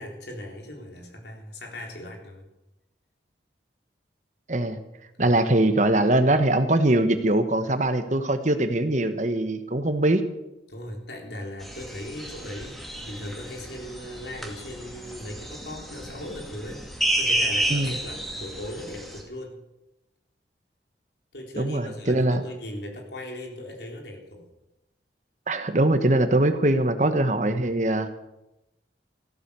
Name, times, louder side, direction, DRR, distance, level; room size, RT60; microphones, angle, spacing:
voice 1, 0.0-2.5 5.2-5.4 10.7-19.6 21.3-24.5, left 1 dB, 70° left, 1 dB, 3.9 m, -38 dB
voice 2, 4.5-4.8 5.2-10.2 17.7-17.9 21.6-22.4 25.5-28.1, right 1 dB, 40° right, 9 dB, 1.2 m, -22 dB
sound 1, 11.6-19.2, right 1 dB, ahead, 2.3 m, -31 dB
15.0 x 13.5 x 6.9 m, 0.93 s
head